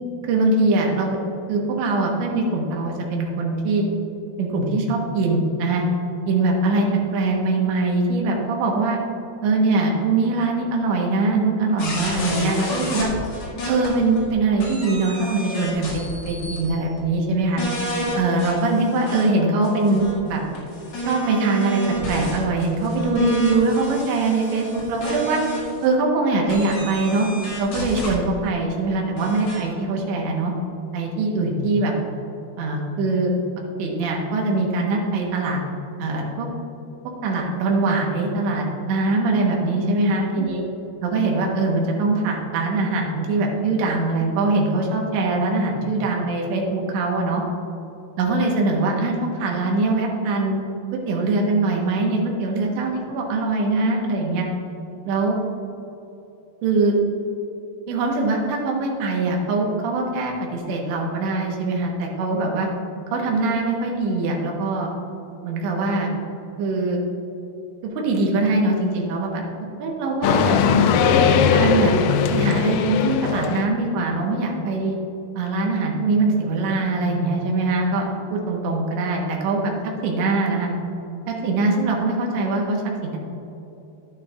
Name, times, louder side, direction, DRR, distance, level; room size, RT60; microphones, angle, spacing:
voice 1, 0.2-1.2 1.5-3.8 4.4-5.8 6.3-6.9 7.1-9.0 9.4-13.1 13.7-17.6 18.1-20.4 21.1-21.8 22.1-25.4 25.8-27.3 27.6-30.5 30.9-31.9 32.6-33.3 33.8-35.6 36.0-36.5 37.0-40.6 41.0-47.4 48.2-50.6 50.9-54.5 55.1-55.4 56.6-57.0 57.9-62.7 63.1-64.9 65.4-66.1 66.6-67.0 68.0-69.4 69.8-70.8 71.3-71.9 72.3-75.0 75.4-79.7 80.0-80.7 81.3-83.2, right 3 dB, 75° right, 0 dB, 3.1 m, -22 dB
sound 1, 11.8-14.3 14.6-16.7 17.0-17.1 17.6-19.2 19.6-25.8 26.5-28.1 29.2-29.6, equal, 50° left, 2.4 m, -29 dB
sound 2, 70.2-73.6, left 6 dB, 85° left, 3.1 m, -19 dB
11.0 x 9.5 x 2.4 m, 3.0 s
omnidirectional pair, 5.8 m